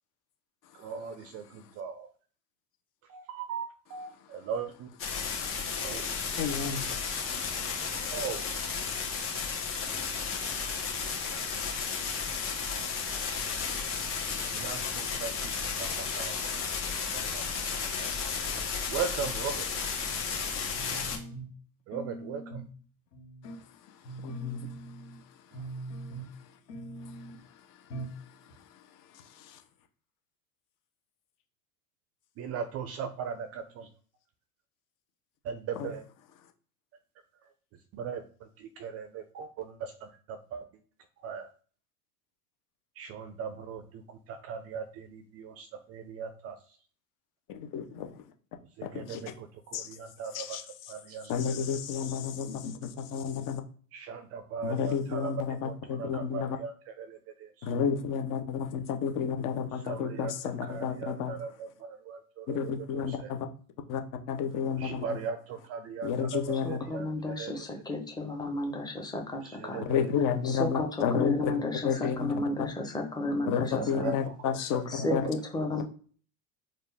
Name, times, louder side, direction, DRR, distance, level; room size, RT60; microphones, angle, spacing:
voice 1, 0.8-1.1 1.8-1.9 3.5-3.7 3.9-4.1 4.5-4.7 5.8-6.0 8.1-8.4 14.6-14.8 15.2-15.3 18.9-19.5 21.9-22.4 32.4-33.3 35.5-36.0 38.0-38.2 38.8-39.1 39.4-39.5 40.5-40.6 41.2-41.4 43.0-43.8 44.5-44.8 45.9-46.5 49.1-49.2 50.2-50.3 50.9-51.2 54.1-54.2 54.5-55.3 56.0-56.1 56.3-56.7 59.9-60.3 60.7-61.5 62.1-62.2 62.5-62.6 64.8-65.4 65.7-66.3 66.7-67.0 67.4-67.5 69.7-70.0 74.0-74.1, right 6 dB, 35° right, 0.4 m, -36 dB
sound 1, 5.0-21.2, left 5 dB, 30° left, 1.4 m, -33 dB
voice 2, 6.4-6.8 24.2-24.7 35.7-35.9 47.7-48.1 48.8-49.2 49.7-49.9 50.3-50.6 51.3-53.6 54.6-56.6 57.6-61.3 62.5-63.5 63.9-64.0 64.3-65.2 66.0-66.8 69.8-71.5 71.8-72.3 73.5-75.3, left 7 dB, 45° left, 0.8 m, -31 dB
sound 2, 20.7-21.6 21.9-22.8 23.1-23.6 24.0-25.2 25.5-26.4 26.7-27.4 27.9-28.2 28.5-28.6, right 2 dB, 90° left, 1.2 m, -42 dB
voice 3, 66.6-69.8 70.4-74.1 74.9-75.8, left 2 dB, 10° left, 0.9 m, -33 dB
4.2 x 2.5 x 3.4 m
hypercardioid pair, 110°, 46 cm